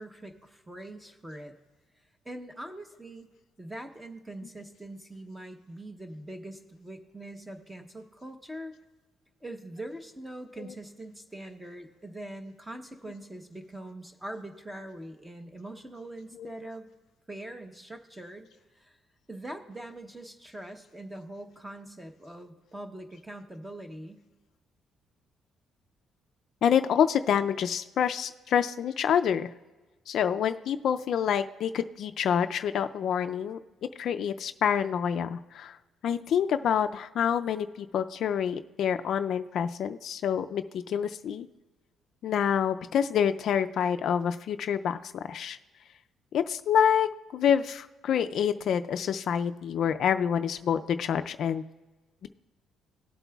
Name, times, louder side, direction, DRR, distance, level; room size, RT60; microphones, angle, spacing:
voice 1, 0.0-1.5 2.2-3.3 3.6-8.7 9.4-16.9 17.3-18.5 18.7-19.0 19.3-24.3, right 1 dB, 10° right, 6 dB, 0.9 m, -43 dB
voice 2, 26.6-29.5 30.1-33.6 34.0-35.8 36.0-41.5 42.2-45.6 46.3-51.6 52.2-52.3, left 8 dB, 60° left, 9 dB, 0.4 m, -27 dB
18.5 x 8.1 x 2.3 m, 1.2 s
cardioid pair, 135°, 0 cm